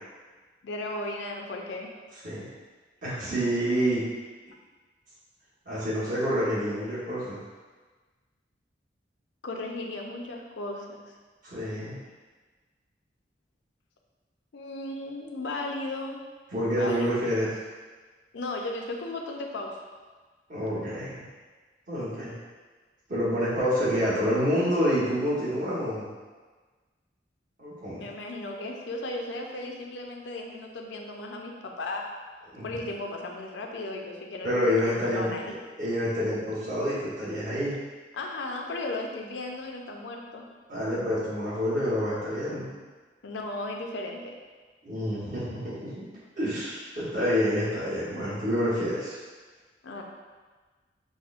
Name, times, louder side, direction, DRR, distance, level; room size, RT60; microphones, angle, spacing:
voice 1, 0.6-1.9 9.4-11.0 14.5-16.2 16.7-17.2 18.3-19.8 28.0-32.1 32.6-35.6 38.1-40.4 43.2-44.3 49.8-50.0, left 2 dB, 85° left, 1 dB, 0.5 m, -35 dB
voice 2, 3.0-4.0 5.6-7.4 11.4-12.0 16.5-17.5 20.5-21.3 21.9-22.3 23.1-26.1 27.6-28.0 32.5-32.7 34.4-35.4 35.8-37.7 40.7-42.7 44.8-46.1 46.4-49.2, equal, 50° right, -10 dB, 1.1 m, -28 dB
6.2 x 2.1 x 2.4 m, 1.4 s
head